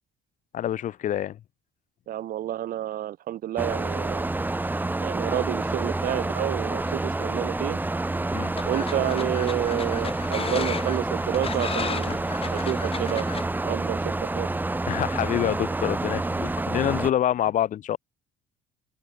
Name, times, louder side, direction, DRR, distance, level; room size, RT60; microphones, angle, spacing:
voice 1, 0.5-1.4 8.3-8.5 14.9-18.0, left 11 dB, 50° left, 0.6 m, -26 dB
voice 2, 2.1-4.3 5.0-7.8 8.7-12.2 12.5-13.3 13.7-14.5, right 12 dB, 60° right, 0.9 m, -29 dB
sound 1, 3.6-17.1, right 2 dB, 10° right, 1.1 m, -28 dB
sound 2, 8.3-13.5, left 6 dB, 35° left, 2.8 m, -34 dB
open air
cardioid pair, 110°, 17 cm